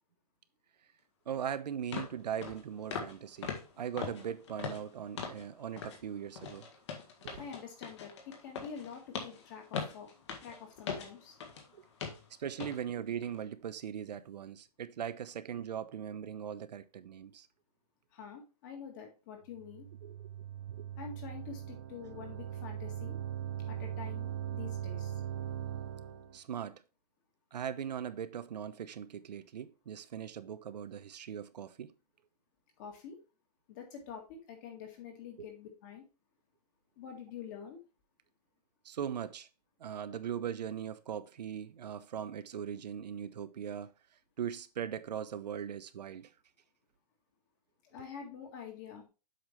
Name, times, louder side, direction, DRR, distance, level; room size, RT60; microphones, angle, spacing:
sound 1, 1.3-1.4 1.9-2.1 2.4-2.6 2.9-3.2 3.4-5.5 5.8-6.0 6.4-11.7 12.0-12.2 12.6-12.8 13.2-13.4, left 6 dB, 45° left, 1.8 m, -41 dB
voice 1, 1.3-6.7 7.2-7.4 11.7-11.8 12.4-17.5 20.0-20.3 20.7-20.9 26.3-26.8 27.5-31.9 35.4-35.5 38.8-39.5 39.8-43.9 44.4-46.3, right 8 dB, 90° right, 0.9 m, -40 dB
voice 2, 7.4-10.1 10.4-11.4 18.1-19.9 21.0-23.2 23.7-25.2 32.8-33.2 33.7-36.0 37.0-37.8 47.8-49.0, left 7 dB, 30° left, 1.9 m, -47 dB
sound 2, 19.6-26.4, right 10 dB, 25° right, 0.5 m, -40 dB
7.8 x 5.8 x 3.3 m
hypercardioid pair, 180°, 21 cm